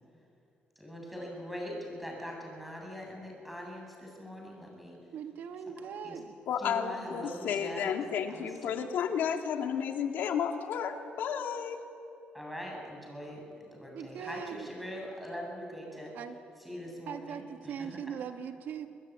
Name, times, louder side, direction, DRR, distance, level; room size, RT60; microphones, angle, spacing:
voice 1, 0.8-5.0 5.8-7.9 8.3-8.7 12.3-13.4 13.7-16.1 16.6-18.0, equal, ahead, -1 dB, 7.9 m, -42 dB
voice 2, 5.1-6.3 13.9-14.7 16.1-16.4 17.1-18.9, right 7 dB, 70° right, 6 dB, 2.0 m, -40 dB
voice 3, 6.5-11.8, left 8 dB, 75° left, 4 dB, 2.4 m, -32 dB
25.0 x 21.0 x 9.8 m, 2.6 s
cardioid pair, 120°, 3 cm